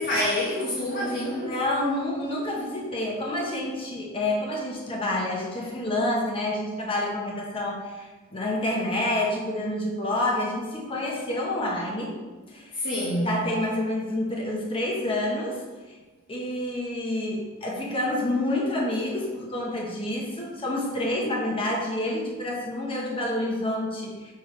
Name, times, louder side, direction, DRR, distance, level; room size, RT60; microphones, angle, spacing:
voice 1, 0.0-1.5 12.7-13.4, left 1 dB, 50° left, -6 dB, 1.2 m, -27 dB
voice 2, 1.0-12.2 12.5-12.7 13.2-16.0 16.3-24.3, left 1 dB, 25° left, -2 dB, 1.2 m, -28 dB
6.8 x 3.8 x 4.6 m, 1.3 s
head